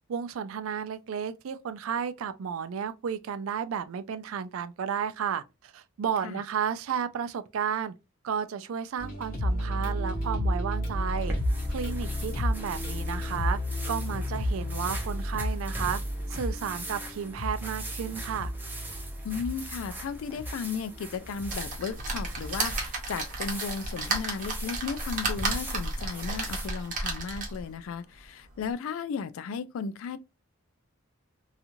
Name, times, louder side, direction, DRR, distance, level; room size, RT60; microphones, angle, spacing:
voice 1, 0.1-7.9 8.2-11.3 11.7-13.6 13.9-16.0 16.3-18.5, right 7 dB, 80° right, 0.4 m, -33 dB
sound 1, 9.0-22.8, left 1 dB, 45° left, 1.1 m, -32 dB
sound 2, 11.1-26.7, right 1 dB, 10° right, 0.7 m, -42 dB
voice 2, 19.2-30.2, left 6 dB, 75° left, 0.3 m, -35 dB
sound 3, 21.5-27.7 28.2-28.3 28.6-28.7, right 3 dB, 40° right, 0.8 m, -33 dB
2.8 x 2.4 x 2.6 m
head